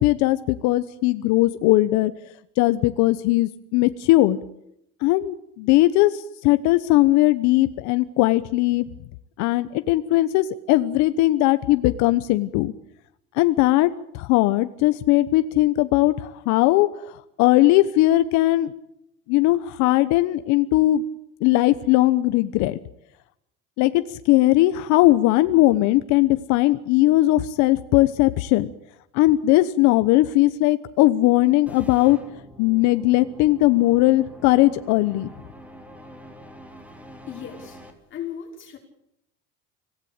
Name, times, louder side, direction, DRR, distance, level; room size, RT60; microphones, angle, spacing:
voice 1, 0.0-2.1 2.6-4.4 5.0-8.9 9.4-12.7 13.4-18.7 19.3-21.0 21.4-22.8 23.8-28.7 29.1-32.2 32.6-35.3, left 17 dB, 65° left, 12 dB, 1.1 m, -19 dB
sound 1, 31.7-37.9, equal, 5° right, 3.4 m, -45 dB
voice 2, 37.3-37.8 38.1-38.8, left 9 dB, 40° left, 3 dB, 5.6 m, -36 dB
25.0 x 17.0 x 8.9 m, 0.78 s
cardioid pair, 135°, 30 cm